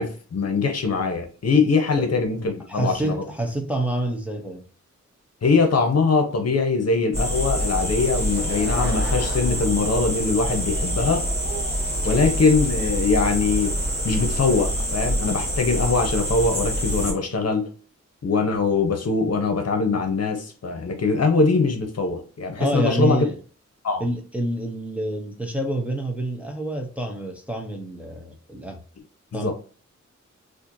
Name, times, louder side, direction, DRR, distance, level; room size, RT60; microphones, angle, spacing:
voice 1, 0.0-3.1 5.4-11.3 12.0-13.7 14.0-17.7 18.2-23.2 23.8-24.0 29.3-29.5, left 4 dB, 60° left, 0.8 m, -22 dB
voice 2, 2.7-4.6 22.6-23.4 24.0-28.8 29.3-29.5, right 1 dB, 5° right, 0.6 m, -27 dB
sound 1, 7.1-17.1, equal, 20° right, 1.6 m, -26 dB
Laughter / Crowd, 8.1-10.8 11.5-11.6, left 2 dB, 35° left, 1.1 m, -36 dB
4.3 x 2.5 x 2.6 m
wide cardioid pair, 145°, 29 cm